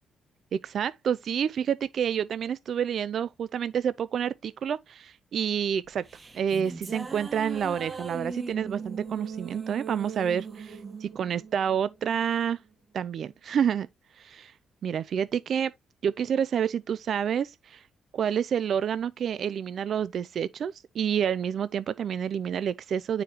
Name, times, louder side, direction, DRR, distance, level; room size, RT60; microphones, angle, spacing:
voice 1, 0.5-6.0 6.3-12.6 12.9-13.9 14.2-14.5 14.8-15.7 16.0-17.8 18.1-23.2, right 8 dB, 60° right, 0.4 m, -28 dB
sound 1, 5.9-12.4, right 4 dB, 30° right, 1.3 m, -39 dB
9.2 x 4.9 x 2.9 m
cardioid pair, 90°, 0 cm